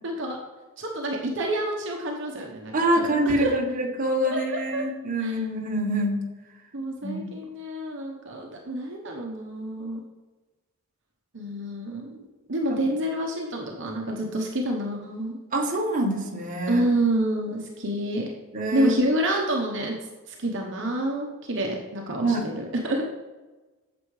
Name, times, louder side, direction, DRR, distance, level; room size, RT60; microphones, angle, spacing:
voice 1, 0.0-0.4 0.8-3.5 4.3-4.8 5.2-5.4 6.7-10.0 11.3-12.2 12.5-15.4 16.7-18.3 18.7-20.0 20.3-23.0, right 1 dB, 55° right, 0 dB, 1.0 m, -28 dB
voice 2, 2.7-6.2 7.0-7.3 15.5-16.9 18.5-18.9 22.2-22.4, right 1 dB, 35° right, 0 dB, 1.2 m, -25 dB
9.0 x 6.9 x 3.2 m, 1.2 s
head